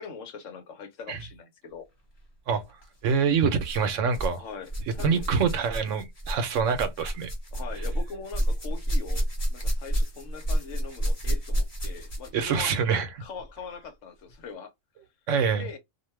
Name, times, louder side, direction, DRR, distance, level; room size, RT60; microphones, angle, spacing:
voice 1, 0.0-1.9 4.4-5.3 7.5-12.7 13.2-14.7 15.6-15.8, left 5 dB, 75° left, 1.1 m, -41 dB
sound 1, 2.7-2.9 3.6-4.4 4.6-12.4 13.4-13.5 14.3-14.4, equal, 30° left, 1.3 m, -29 dB
voice 2, 3.0-4.4 5.0-7.3 12.3-13.2 15.3-15.7, right 6 dB, 75° right, 1.0 m, -25 dB
2.6 x 2.2 x 3.1 m
omnidirectional pair, 1.3 m